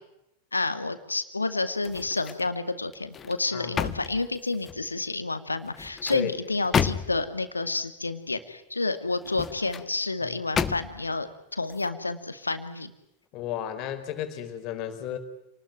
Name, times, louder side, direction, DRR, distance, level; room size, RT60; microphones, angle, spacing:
voice 1, 0.5-12.9, left 3 dB, 80° left, 10 dB, 2.3 m, -30 dB
sound 1, 1.8-2.5 2.9-4.9 5.6-7.4 9.1-9.9 10.5-11.1 11.6-11.8, left 7 dB, 25° left, 1.4 m, -31 dB
voice 2, 13.3-15.2, left 11 dB, 40° left, 7 dB, 4.7 m, -33 dB
29.0 x 20.0 x 9.0 m, 0.84 s
figure-of-eight pair, 90°, 0 cm